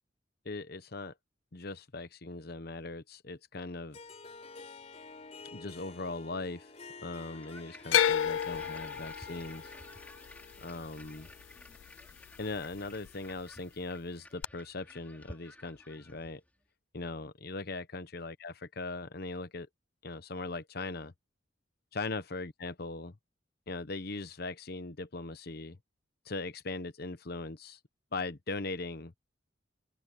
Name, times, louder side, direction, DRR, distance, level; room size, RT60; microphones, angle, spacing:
voice 1, 0.4-1.1 1.5-4.0 5.5-6.7 7.0-9.7 10.6-11.3 12.4-16.4 16.9-19.7 20.0-21.1 21.9-23.2 23.7-25.8 26.3-27.8 28.1-29.1, left 3 dB, 55° left, 1.0 m, -39 dB
Harp, 3.9-12.4, left 3 dB, 35° left, 4.8 m, -51 dB
sound 1, 7.2-16.5, left 1 dB, 10° left, 4.5 m, -53 dB
sound 2, 7.9-12.1 12.4-13.1 14.4-14.5, left 10 dB, 80° left, 0.3 m, -31 dB
open air
head